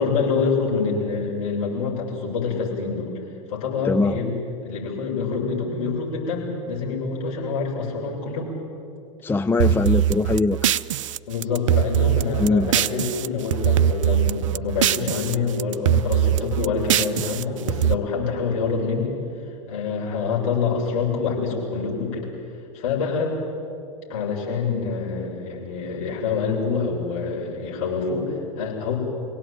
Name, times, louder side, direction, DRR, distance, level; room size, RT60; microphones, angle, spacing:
voice 1, 0.0-3.1 3.5-4.3 4.6-8.5 11.3-19.1 19.7-22.3 22.7-23.4 24.1-28.9, left 5 dB, 55° left, -3 dB, 7.4 m, -26 dB
voice 2, 3.8-4.2 9.2-10.7 12.4-12.7, left 3 dB, 10° left, 10 dB, 0.6 m, -21 dB
sound 1, 9.6-13.3 13.5-15.3 15.6-17.9, right 10 dB, 65° right, 0.5 m, -21 dB
25.5 x 17.5 x 9.3 m, 2.6 s
figure-of-eight pair, 80°, 17 cm